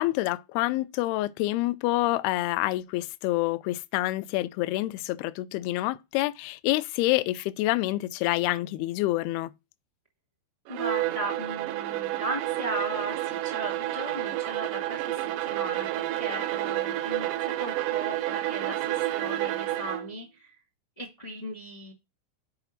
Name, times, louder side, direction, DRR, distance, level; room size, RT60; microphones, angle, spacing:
voice 1, 0.0-9.5, left 18 dB, 85° left, 2.2 m, -27 dB
voice 2, 10.7-17.3 17.6-20.6 21.0-21.9, right 1 dB, 30° left, 0.6 m, -37 dB
Bowed string instrument, 10.7-20.2, right 14 dB, 80° right, 2.9 m, -30 dB
6.8 x 4.9 x 5.9 m
omnidirectional pair, 5.1 m